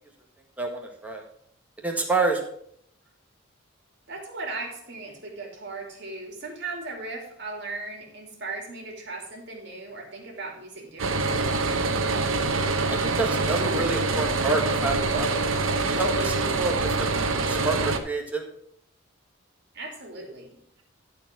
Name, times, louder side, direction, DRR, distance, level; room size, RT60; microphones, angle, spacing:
voice 1, 0.6-1.2 1.8-2.4 12.9-15.3 15.9-17.1 17.5-18.5, right 3 dB, 10° right, 0 dB, 1.6 m, -28 dB
voice 2, 4.1-11.5 15.1-15.3 19.7-20.8, right 3 dB, 55° right, 1 dB, 2.7 m, -37 dB
sound 1, 11.0-18.0, right 3 dB, 90° right, 1.0 m, -25 dB
12.5 x 4.5 x 6.0 m, 0.68 s
head